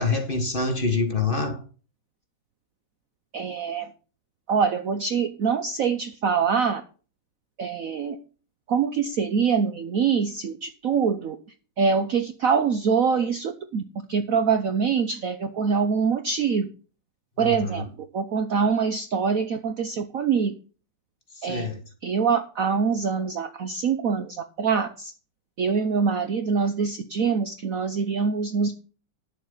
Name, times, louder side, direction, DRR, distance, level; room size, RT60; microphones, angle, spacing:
voice 1, 0.0-1.6 17.4-17.8 21.3-21.8, left 3 dB, 30° left, 1.6 m, -26 dB
voice 2, 3.3-3.9 4.5-6.8 7.6-8.2 8.7-11.4 11.8-13.8 14.1-16.7 17.4-17.8 18.1-20.5 21.4-21.7 22.0-25.1 25.6-28.7, right 6 dB, 60° right, 1.0 m, -24 dB
10.0 x 7.0 x 5.4 m
omnidirectional pair, 2.1 m